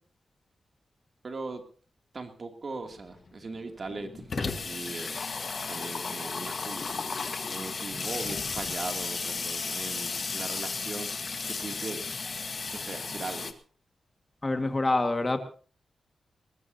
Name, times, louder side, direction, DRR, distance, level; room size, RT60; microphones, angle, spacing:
voice 1, 1.2-1.6 2.1-5.3 5.7-7.0 7.5-12.0 12.7-13.6, right 3 dB, 50° right, 4 dB, 2.7 m, -39 dB
Water tap faucet / Sink (filling or washing), 2.9-3.0 3.3-3.4 3.6-13.5, left 4 dB, 50° left, 1.5 m, -34 dB
voice 2, 14.4-15.4, left 2 dB, 30° left, 7 dB, 1.8 m, -26 dB
20.5 x 20.0 x 2.8 m, 0.40 s
cardioid pair, 80°, 0 cm